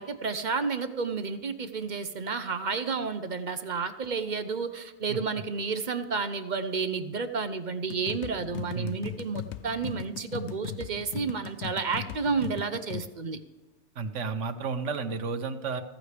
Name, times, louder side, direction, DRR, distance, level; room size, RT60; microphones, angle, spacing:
voice 1, 0.0-13.4, right 5 dB, 45° right, 9 dB, 0.8 m, -31 dB
sound 1, 7.9-13.1, left 9 dB, 75° left, 0.9 m, -38 dB
voice 2, 13.9-15.8, right 4 dB, 85° right, 8 dB, 1.3 m, -32 dB
15.5 x 14.5 x 3.4 m, 1.1 s
omnidirectional pair, 1.2 m